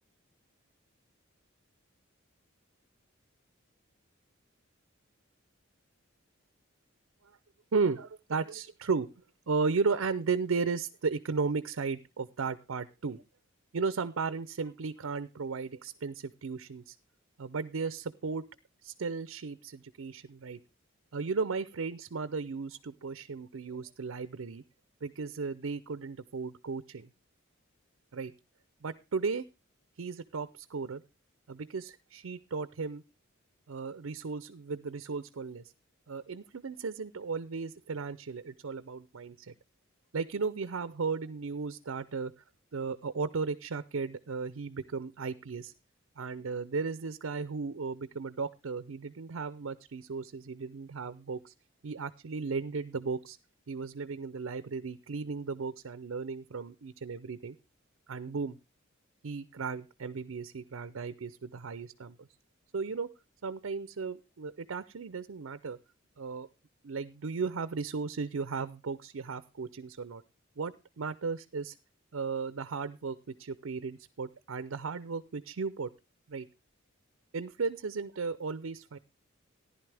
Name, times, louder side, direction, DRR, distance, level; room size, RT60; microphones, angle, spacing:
voice 1, 7.7-9.1 9.5-13.2 13.7-17.0 17.4-18.4 18.8-20.6 21.1-24.6 25.0-27.1 28.1-28.3 28.8-29.4 30.0-31.0 31.5-33.0 33.7-35.7 36.1-39.5 40.1-42.3 42.7-45.7 46.2-51.5 51.8-53.4 53.7-57.6 58.1-58.6 59.2-62.3 62.7-63.1 63.4-65.8 66.2-66.5 66.8-70.2 70.6-71.7 72.1-75.9 76.3-76.5 77.3-79.0, right 4 dB, 75° right, 14 dB, 0.6 m, -35 dB
14.5 x 11.0 x 3.4 m, 0.27 s
head